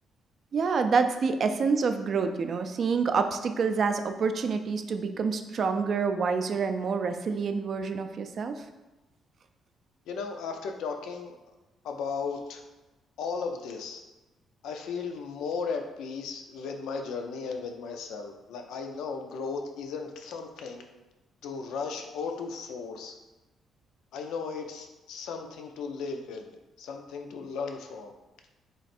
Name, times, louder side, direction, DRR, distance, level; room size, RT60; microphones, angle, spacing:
voice 1, 0.5-8.6, right 5 dB, 55° right, 7 dB, 0.3 m, -27 dB
voice 2, 10.1-11.4 11.8-12.6 13.2-14.0 14.6-20.8 21.4-23.1 24.1-28.1, left 5 dB, 85° left, 4 dB, 0.4 m, -36 dB
3.1 x 2.5 x 4.2 m, 1.1 s
cardioid pair, 90°, 0 cm